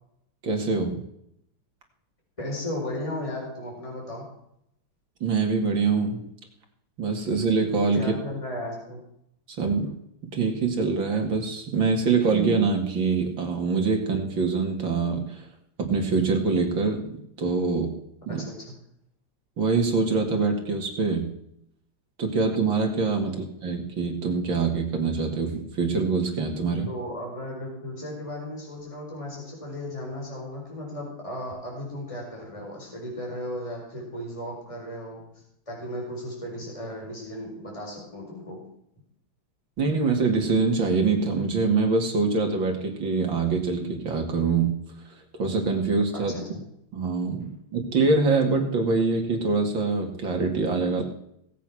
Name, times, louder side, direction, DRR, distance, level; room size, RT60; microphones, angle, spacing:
voice 1, 0.4-1.0 5.2-6.2 7.0-8.1 9.5-9.9 10.2-15.5 15.8-17.9 18.3-18.4 19.6-21.3 22.2-26.9 39.8-44.7 45.4-46.3 46.9-51.0, right 4 dB, 65° right, 3 dB, 3.0 m, -24 dB
voice 2, 2.4-4.2 7.9-9.0 18.3-18.6 26.9-35.2 35.7-38.6 46.1-46.6, left 1 dB, 15° left, -2 dB, 4.7 m, -35 dB
18.5 x 8.3 x 6.1 m, 0.75 s
omnidirectional pair, 2.3 m